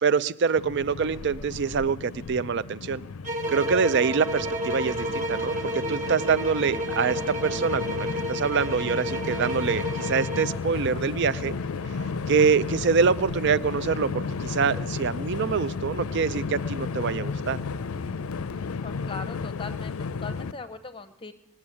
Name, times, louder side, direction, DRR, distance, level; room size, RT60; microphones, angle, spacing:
voice 1, 0.0-3.0 3.5-11.5 12.3-17.6, right 5 dB, 55° right, 17 dB, 0.5 m, -25 dB
Train, 0.6-20.5, left 4 dB, 90° left, 0.5 m, -33 dB
sound 1, 3.2-10.6, equal, 35° right, 1.5 m, -31 dB
sound 2, 3.4-20.0, right 3 dB, 20° right, 1.2 m, -44 dB
voice 2, 18.8-21.3, left 4 dB, 25° left, 9 dB, 0.7 m, -39 dB
18.5 x 7.2 x 9.8 m, 0.97 s
head